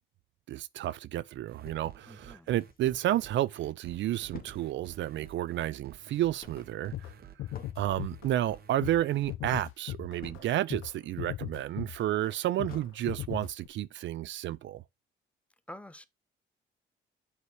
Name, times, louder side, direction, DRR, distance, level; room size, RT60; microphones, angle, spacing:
voice 1, 0.5-7.1 7.8-14.8, right 13 dB, 70° right, 0.5 m, -31 dB
sound 1, 1.5-9.3, right 8 dB, 50° right, 1.2 m, -52 dB
sound 2, 1.7-3.2 3.6-3.7 3.9-10.9 11.3-13.4 13.9-14.0 14.4-14.5, left 7 dB, 45° left, 1.1 m, -53 dB
voice 2, 2.1-2.5 7.4-7.7 15.7-16.1, left 1 dB, 5° left, 0.7 m, -48 dB
sound 3, 6.6-6.7 6.9-7.1 7.4-8.5 8.8-9.0 9.3-10.4 10.7-10.9 11.2-12.3 12.6-12.8 13.1-13.7, left 14 dB, 85° left, 0.6 m, -38 dB
8.3 x 3.2 x 4.8 m
cardioid pair, 90°, 20 cm